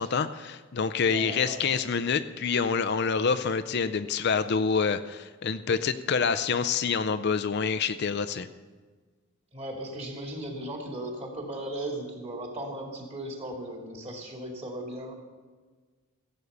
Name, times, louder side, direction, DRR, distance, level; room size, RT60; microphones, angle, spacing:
voice 1, 0.0-8.5, left 5 dB, 50° left, 11 dB, 0.5 m, -27 dB
voice 2, 0.9-1.7 9.5-15.1, right 1 dB, 30° right, 0 dB, 2.4 m, -37 dB
16.0 x 8.3 x 6.7 m, 1.4 s
head